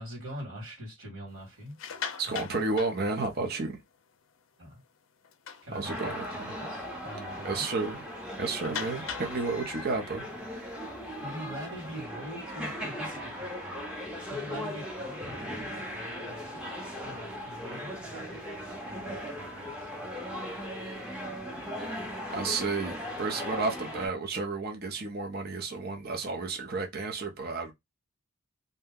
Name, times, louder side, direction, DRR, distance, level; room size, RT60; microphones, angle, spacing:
voice 1, 0.0-1.8 2.3-2.4 3.5-3.7 4.6-4.8 5.6-6.0 6.4-7.7 9.0-9.2 11.2-13.9 14.3-16.6 17.0-19.9, equal, 70° right, 1.7 m, -44 dB
sound 1, 1.6-3.7 4.2-4.4 4.7-4.8 5.2-6.3 6.7-6.9 7.2-7.3 8.6-12.0, left 7 dB, 55° left, 0.4 m, -42 dB
voice 2, 2.2-3.8 5.7-6.5 7.4-8.0 8.4-10.3 22.3-27.7, right 3 dB, 45° right, 0.5 m, -32 dB
sound 2, 5.8-24.1, equal, 5° right, 0.6 m, -38 dB
2.7 x 2.1 x 3.5 m
head